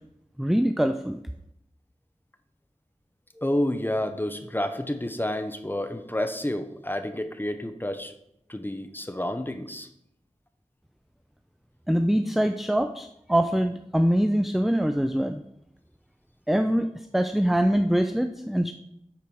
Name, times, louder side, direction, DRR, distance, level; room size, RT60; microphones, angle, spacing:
voice 1, 0.4-1.2 11.9-15.4 16.5-18.7, equal, ahead, 7 dB, 0.4 m, -24 dB
voice 2, 3.3-8.1 8.5-9.9, left 1 dB, 15° left, 8 dB, 0.9 m, -29 dB
8.5 x 4.5 x 6.3 m, 0.79 s
wide cardioid pair, 55°, 12 cm